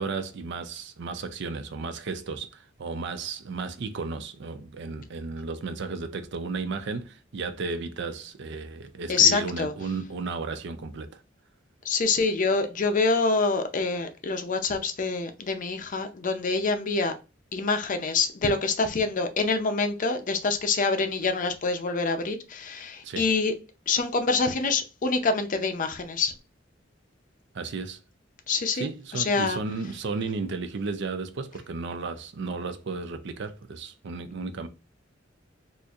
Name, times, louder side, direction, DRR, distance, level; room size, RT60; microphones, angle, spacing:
voice 1, 0.0-11.2 23.0-23.3 27.5-28.0 28.7-34.7, right 4 dB, 65° right, 0.5 m, -34 dB
voice 2, 9.1-9.7 11.9-17.1 17.5-23.5 23.9-26.3 28.5-28.9 29.1-29.6, left 4 dB, 45° left, 0.5 m, -26 dB
4.2 x 2.5 x 2.4 m
head